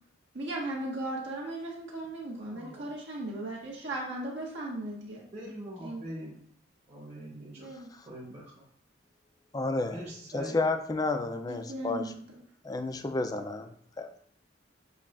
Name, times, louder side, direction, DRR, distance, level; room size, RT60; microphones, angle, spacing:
voice 1, 0.3-5.2 5.8-6.1 7.6-7.9 11.5-12.2, right 1 dB, 85° right, -4 dB, 1.4 m, -37 dB
voice 2, 2.4-2.9 5.3-6.4 6.9-7.7 8.1-8.6 9.9-10.5, equal, 35° right, -7 dB, 1.0 m, -43 dB
voice 3, 9.5-10.0 10.3-12.1 12.6-13.7 14.0-14.1, left 3 dB, 20° left, 7 dB, 0.3 m, -31 dB
6.9 x 2.3 x 2.4 m, 0.63 s
head